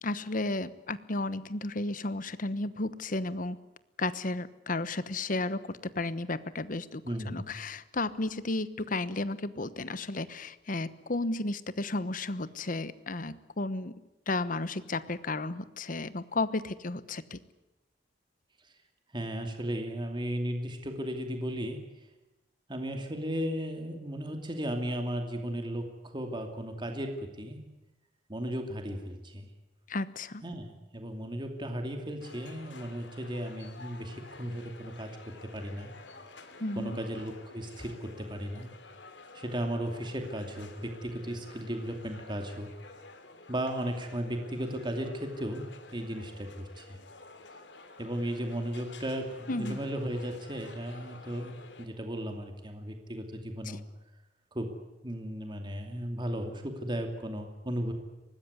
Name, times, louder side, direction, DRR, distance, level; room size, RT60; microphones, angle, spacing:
voice 1, 0.0-3.6 4.0-13.9 14.3-17.4 29.9-30.4 36.6-37.0 49.5-49.8 53.6-53.8, left 2 dB, 50° left, 15 dB, 1.1 m, -33 dB
voice 2, 7.0-7.5 18.6-18.7 19.1-21.9 22.7-27.6 28.3-29.5 30.4-35.9 36.8-38.7 39.3-42.7 43.5-47.0 48.0-53.8 54.5-54.8 55.0-57.9, equal, 25° right, 5 dB, 2.5 m, -35 dB
sound 1, 32.2-51.9, left 3 dB, 80° left, 3.1 m, -51 dB
24.0 x 19.5 x 9.7 m, 1.0 s
head